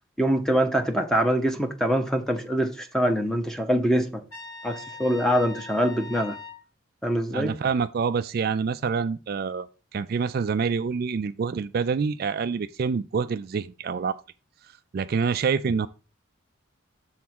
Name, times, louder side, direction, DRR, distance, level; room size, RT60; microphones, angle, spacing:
voice 1, 0.2-4.2 4.6-6.4 7.0-7.5, equal, ahead, 0.8 m, -24 dB
Trumpet, 4.3-6.6, left 3 dB, 85° left, 2.5 m, -41 dB
voice 2, 7.3-14.2 14.9-15.9, right 5 dB, 50° right, 0.3 m, -26 dB
7.1 x 3.6 x 6.0 m
head